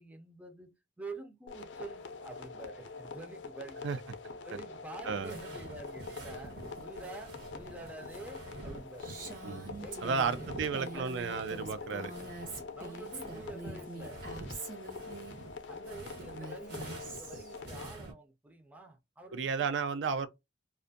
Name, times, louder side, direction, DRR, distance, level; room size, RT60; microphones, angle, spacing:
voice 1, 0.0-3.9 4.4-6.5 6.8-9.1 9.8-11.4 11.8-12.1 12.4-14.2 15.7-19.8, right 3 dB, 10° right, 0.4 m, -48 dB
sound 1, 1.5-17.9, left 4 dB, 85° left, 0.4 m, -45 dB
sound 2, 5.0-12.7 12.9-18.1, right 2 dB, 65° right, 1.2 m, -48 dB
Female speech woman speaking, 9.0-15.4 16.2-17.6, right 3 dB, 50° right, 0.8 m, -45 dB
voice 2, 10.0-12.1 19.3-20.3, right 5 dB, 80° right, 0.4 m, -33 dB
2.5 x 2.3 x 2.5 m
head